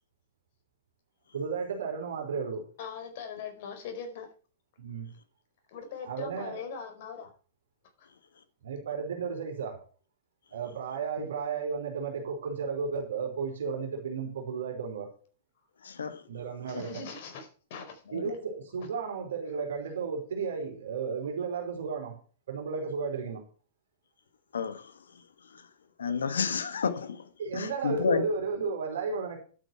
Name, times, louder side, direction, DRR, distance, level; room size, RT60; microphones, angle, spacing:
voice 1, 1.3-2.6 4.8-5.1 6.1-6.6 8.6-9.8 10.5-15.1 16.3-17.0 18.1-22.2 22.5-23.4 27.4-29.4, right 5 dB, 65° right, 4.8 m, -33 dB
voice 2, 2.8-4.3 5.7-7.3 8.0-8.1 16.7-18.0, left 6 dB, 50° left, 4.6 m, -40 dB
voice 3, 15.8-16.2 18.1-18.3 24.5-24.9 25.5-25.6 26.0-28.2, left 6 dB, 70° left, 1.7 m, -31 dB
12.0 x 9.1 x 4.7 m
figure-of-eight pair, 100°, 0 cm